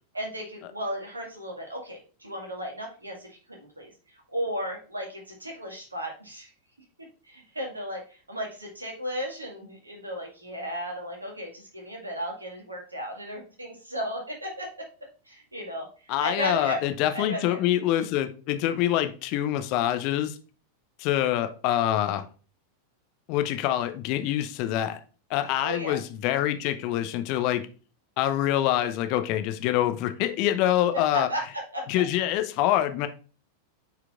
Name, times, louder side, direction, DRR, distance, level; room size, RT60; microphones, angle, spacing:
voice 1, 0.1-6.5 7.2-14.9 15.3-16.8 17.1-17.6 25.6-26.0 31.1-31.4 31.7-31.9, equal, 80° right, 2.0 m, -35 dB
voice 2, 16.1-20.4 21.0-22.3 23.3-25.0 25.3-27.7 28.2-31.3 31.9-33.1, left 12 dB, 45° left, 0.7 m, -25 dB
8.5 x 4.6 x 2.5 m
figure-of-eight pair, 90°, 0 cm